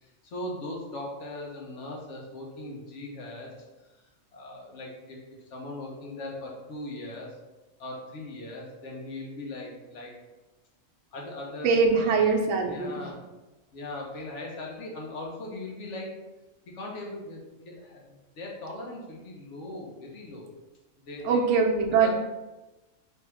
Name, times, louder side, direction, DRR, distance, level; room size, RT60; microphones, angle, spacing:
voice 1, 0.0-3.5 4.3-5.2 5.5-7.3 7.8-10.1 11.1-12.3 12.6-13.2 13.7-16.1 16.7-20.5 21.0-21.4 22.0-22.1, left 2 dB, 65° left, -1 dB, 1.2 m, -39 dB
voice 2, 11.6-13.1 21.2-22.1, right 5 dB, 70° right, 2 dB, 0.9 m, -23 dB
3.4 x 2.7 x 4.4 m, 1.1 s
omnidirectional pair, 1.4 m